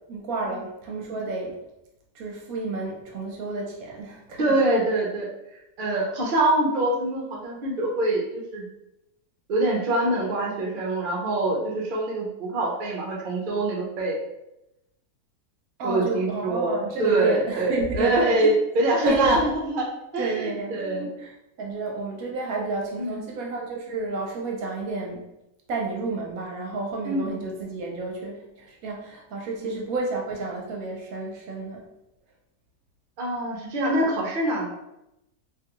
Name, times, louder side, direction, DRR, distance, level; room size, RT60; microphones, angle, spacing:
voice 1, 0.1-1.6 2.1-4.5 15.8-18.6 19.0-19.5 20.2-21.3 21.6-25.3 25.7-31.9, right 3 dB, 70° right, -1 dB, 1.0 m, -30 dB
voice 2, 4.4-5.3 5.8-8.6 9.5-14.2 15.8-19.9 20.1-21.1 23.0-23.2 27.0-27.2 29.6-29.7 33.2-34.7, right 1 dB, 50° right, -2 dB, 0.6 m, -24 dB
3.2 x 2.2 x 2.9 m, 0.88 s
omnidirectional pair, 1.6 m